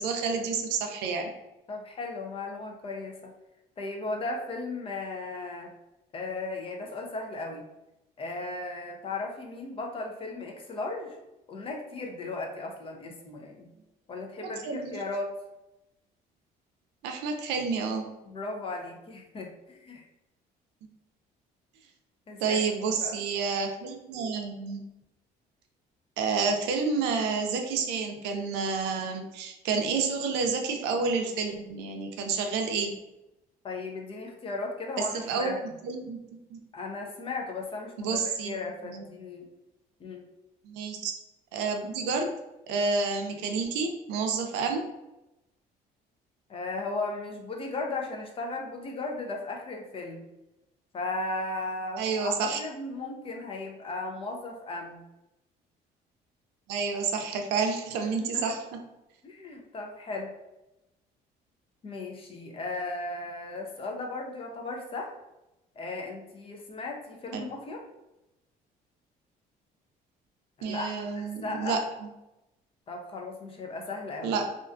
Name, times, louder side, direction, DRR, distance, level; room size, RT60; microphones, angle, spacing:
voice 1, 0.0-1.3 14.4-15.0 17.0-18.1 22.4-24.8 26.2-32.9 35.1-35.6 35.8-36.2 36.5-36.6 38.0-38.6 38.8-39.0 40.6-41.1 41.5-42.3 42.7-44.8 52.0-52.6 56.7-58.6 67.3-67.4 70.6-71.8 74.2-74.5, right 5 dB, 85° right, 4 dB, 0.4 m, -29 dB
voice 2, 1.7-3.3 3.8-5.7 6.1-7.6 8.2-11.2 11.5-13.7 14.1-15.3 18.2-20.0 22.3-23.2 33.6-35.7 36.7-39.5 40.0-40.2 46.5-50.3 50.9-55.0 58.2-58.5 59.2-60.3 61.8-65.1 65.8-67.8 70.6-71.8 72.9-74.4, left 3 dB, 35° left, 1 dB, 0.5 m, -36 dB
2.4 x 2.2 x 2.4 m, 0.93 s
cardioid pair, 110°, 17 cm